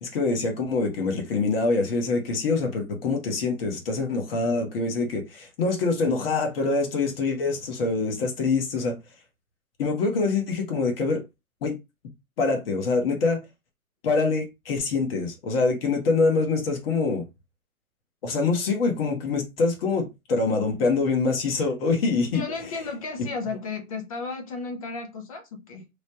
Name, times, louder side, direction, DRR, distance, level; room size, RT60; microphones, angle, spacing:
voice 1, 0.0-8.9 9.8-11.2 11.6-11.8 12.4-13.4 14.0-17.2 18.2-22.4, left 3 dB, 40° left, 1.0 m, -25 dB
voice 2, 22.3-25.9, left 4 dB, 25° left, 0.5 m, -34 dB
3.1 x 2.2 x 2.8 m
hypercardioid pair, 135°, 43 cm